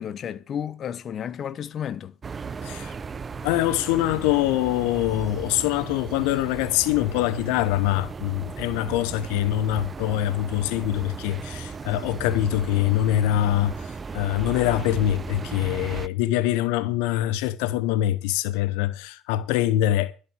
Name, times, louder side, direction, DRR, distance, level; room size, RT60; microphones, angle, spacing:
voice 1, 0.0-2.1, left 9 dB, 45° left, 0.9 m, -32 dB
sound 1, 2.2-16.1, right 5 dB, 30° right, 0.6 m, -36 dB
voice 2, 2.6-2.9 3.4-20.1, left 14 dB, 80° left, 0.7 m, -24 dB
12.5 x 6.4 x 7.9 m
supercardioid pair, 90°, 0 cm